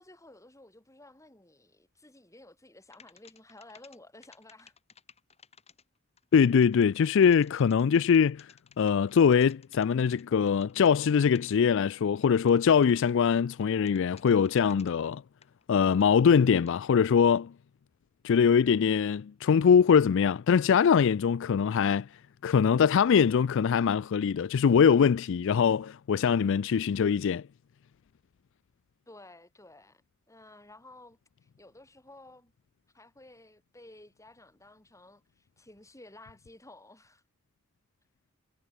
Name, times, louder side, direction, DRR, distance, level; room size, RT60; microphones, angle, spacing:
voice 1, 0.0-4.8 29.1-30.0 30.3-32.5 32.9-37.2, left 2 dB, 15° left, 6.9 m, -53 dB
sound 1, 2.9-4.0 4.2-13.3 13.6-14.9 15.4-16.8, left 6 dB, 30° left, 6.7 m, -57 dB
voice 2, 6.3-8.5 8.8-15.2 15.7-17.5 18.2-22.1 22.4-27.4, left 7 dB, 60° left, 0.4 m, -23 dB
head